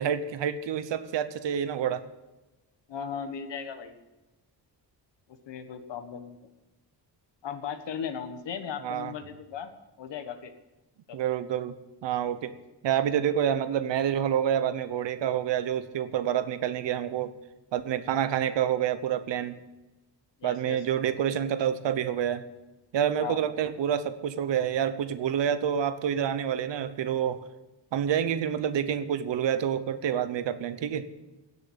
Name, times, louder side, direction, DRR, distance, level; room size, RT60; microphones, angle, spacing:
voice 1, 0.0-2.0 8.8-9.1 11.1-12.5 12.8-17.3 17.7-19.6 20.4-22.5 22.9-27.4 27.9-31.1, right 9 dB, 80° right, 13 dB, 1.0 m, -28 dB
voice 2, 2.9-4.0 5.5-6.5 7.4-9.7 10.0-10.5 11.1-11.2 20.4-20.8 23.2-23.4, left 7 dB, 80° left, 8 dB, 1.5 m, -37 dB
16.5 x 6.9 x 7.4 m, 1.1 s
wide cardioid pair, 145°, 42 cm